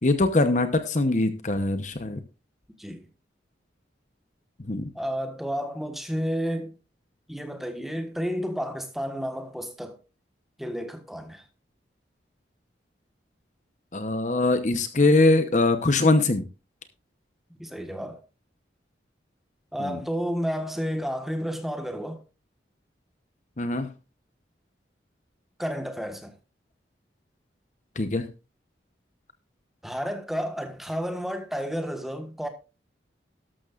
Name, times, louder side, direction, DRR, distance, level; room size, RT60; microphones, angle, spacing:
voice 1, 0.0-2.2 4.6-4.9 13.9-16.4 19.8-20.0 23.6-23.9 28.0-28.3, left 2 dB, 40° left, 0.9 m, -22 dB
voice 2, 4.9-6.7 7.3-10.0 10.6-11.4 17.6-18.2 19.7-22.2 25.6-26.3 29.8-32.5, equal, ahead, 1.4 m, -31 dB
12.5 x 12.5 x 2.5 m
head